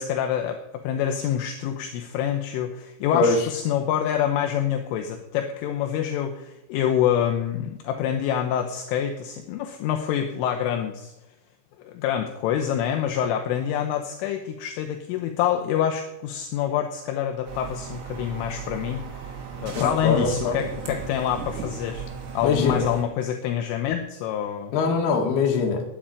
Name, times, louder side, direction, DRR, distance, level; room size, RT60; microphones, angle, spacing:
voice 1, 0.0-11.1 11.8-19.3 19.6-22.1 22.3-24.7, left 9 dB, 80° left, 4 dB, 3.3 m, -26 dB
sound 1, 17.5-23.0, right 6 dB, 65° right, 4.5 m, -36 dB
voice 2, 19.8-20.6 22.4-22.9 24.7-25.8, left 5 dB, 60° left, 2 dB, 3.6 m, -22 dB
9.9 x 8.8 x 9.9 m, 0.93 s
omnidirectional pair, 5.9 m